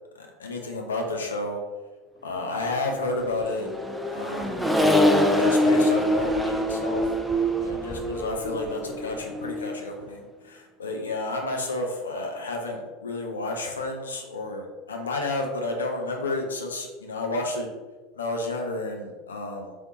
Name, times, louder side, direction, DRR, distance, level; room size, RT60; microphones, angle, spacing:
voice 1, 0.2-1.6 2.2-3.7 4.1-5.0 5.4-7.0 7.6-17.7 18.2-19.8, left 2 dB, 75° left, 1 dB, 0.7 m, -31 dB
Accelerating revving vroom, 3.2-9.9, left 1 dB, ahead, 0.4 m, -24 dB
3.3 x 3.1 x 4.0 m, 1.2 s
figure-of-eight pair, 80°, 0 cm